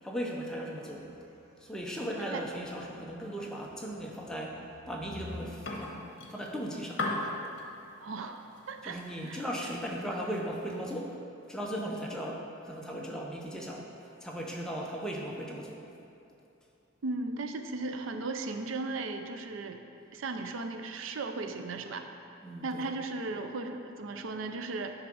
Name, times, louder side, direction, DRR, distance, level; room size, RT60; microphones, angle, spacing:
voice 1, 0.0-1.1 1.6-6.0 6.3-7.0 8.8-11.1 11.5-13.9 14.2-15.8 22.4-22.8, equal, 5° left, -2 dB, 0.7 m, -37 dB
sound 1, 0.7-5.6, left 2 dB, 50° right, 1.3 m, -51 dB
sound 2, 5.2-11.1, left 2 dB, 60° left, 1.1 m, -41 dB
voice 2, 8.0-9.0 9.3-9.4 17.0-19.8 20.1-22.1 22.6-24.9, right 3 dB, 75° right, 6 dB, 0.5 m, -36 dB
9.4 x 3.7 x 6.1 m, 2.7 s
head